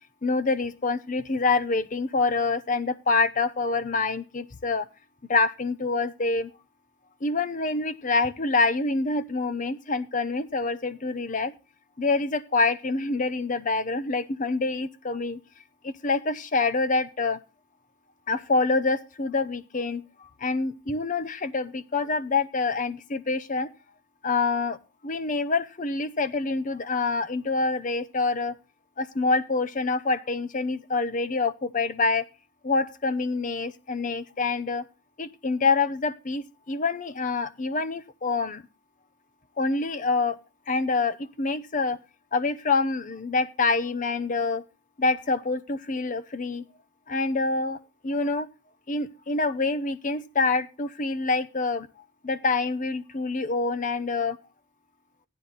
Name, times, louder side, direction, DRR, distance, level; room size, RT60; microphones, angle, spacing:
voice 1, 0.2-4.9 5.3-6.5 7.2-11.5 12.0-15.4 15.8-17.4 18.3-23.7 24.2-24.8 25.0-28.5 29.0-32.2 32.6-34.8 35.2-38.6 39.6-40.4 40.7-42.0 42.3-44.6 45.0-46.6 47.1-48.5 48.9-51.9 52.2-54.4, left 3 dB, 40° left, 13 dB, 0.8 m, -26 dB
15.0 x 10.0 x 4.1 m, 0.31 s
head